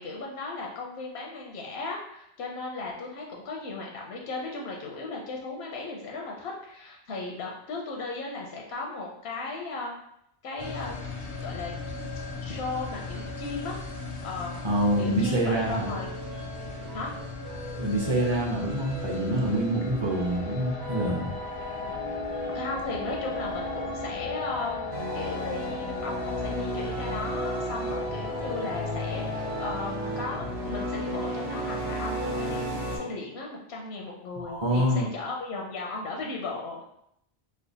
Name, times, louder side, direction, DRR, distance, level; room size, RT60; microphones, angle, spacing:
voice 1, 0.0-9.9 10.4-11.0 11.4-11.7 12.4-13.8 14.2-14.6 15.0-16.1 16.9-17.1 22.5-24.8 25.1-32.6 32.9-36.8, left 3 dB, 85° left, -1 dB, 0.9 m, -36 dB
sound 1, 10.6-29.8, left 4 dB, 45° left, 0.4 m, -37 dB
voice 2, 14.6-15.9 17.8-21.3 34.4-35.1, right 1 dB, 30° right, -2 dB, 0.7 m, -26 dB
sound 2, 15.6-33.3, right 4 dB, 70° right, 0.8 m, -40 dB
sound 3, 24.9-33.0, equal, 90° right, 1.3 m, -33 dB
3.3 x 2.0 x 3.9 m, 0.75 s
omnidirectional pair, 1.0 m